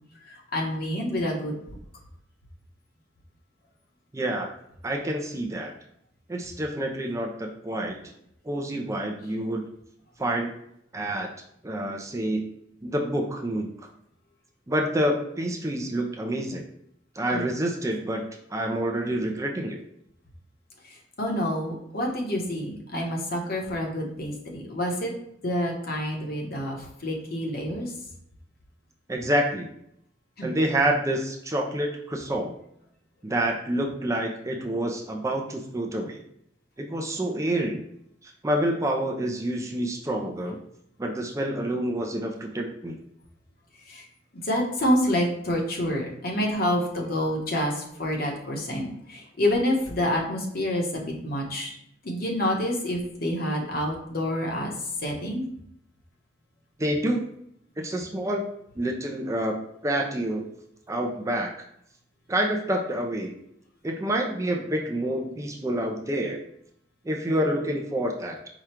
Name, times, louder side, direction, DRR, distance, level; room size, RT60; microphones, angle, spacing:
voice 1, 0.3-1.5 17.3-17.5 21.2-25.1 25.4-27.9 30.4-30.5 43.9-44.0 44.4-51.8 52.0-54.7 55.0-55.4, left 1 dB, 55° left, 0 dB, 1.1 m, -28 dB
voice 2, 4.1-4.5 4.8-5.7 6.3-8.0 8.4-9.7 10.2-10.5 10.9-11.3 11.6-12.5 12.8-13.7 14.7-16.6 17.2-18.2 18.5-19.8 29.1-29.7 30.4-32.5 33.2-36.2 36.8-37.8 38.2-40.6 41.0-43.0 56.8-57.3 57.8-59.6 59.8-60.5 60.9-61.5 62.3-63.3 63.8-66.4 67.0-68.4, right 1 dB, 15° right, 1 dB, 0.5 m, -28 dB
4.9 x 2.3 x 4.3 m, 0.74 s
head